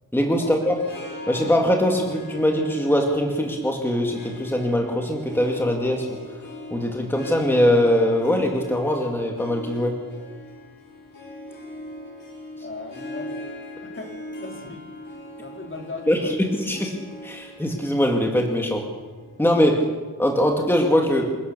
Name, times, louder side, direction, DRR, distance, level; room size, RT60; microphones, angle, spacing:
voice 1, 0.1-0.8 1.3-6.2 6.7-10.0 16.1-17.0 17.2-18.8 19.4-19.9 20.2-21.3, equal, 5° left, 1 dB, 2.2 m, -22 dB
Harp, 0.6-20.0, left 1 dB, 90° left, 7.3 m, -40 dB
voice 2, 12.6-13.3 14.0-14.9 15.4-16.3 19.7-19.9, left 3 dB, 40° left, 2 dB, 3.3 m, -37 dB
27.5 x 17.5 x 6.9 m, 1.4 s
wide cardioid pair, 165°, 32 cm